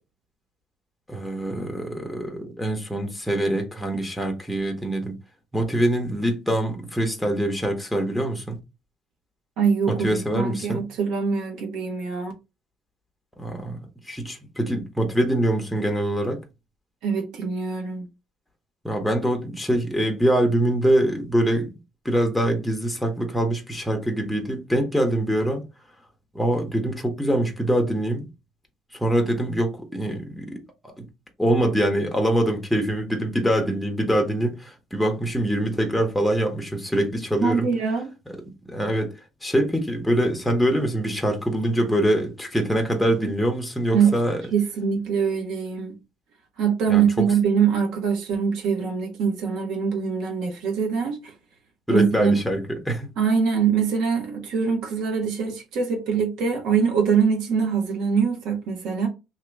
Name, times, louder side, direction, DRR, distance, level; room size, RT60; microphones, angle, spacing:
voice 1, 1.1-5.2 5.5-8.6 9.9-10.8 13.4-13.8 14.1-16.4 18.8-21.7 22.0-25.6 26.3-28.3 28.9-31.0 31.4-37.7 38.7-44.4 46.9-47.3 51.9-53.1, right 1 dB, ahead, 0.9 m, -24 dB
voice 2, 9.6-12.3 17.0-18.1 37.4-38.1 43.9-44.2 44.5-46.0 46.6-51.3 51.9-52.4 53.2-59.1, right 6 dB, 75° right, 1.4 m, -23 dB
2.9 x 2.8 x 3.5 m
cardioid pair, 120°, 0 cm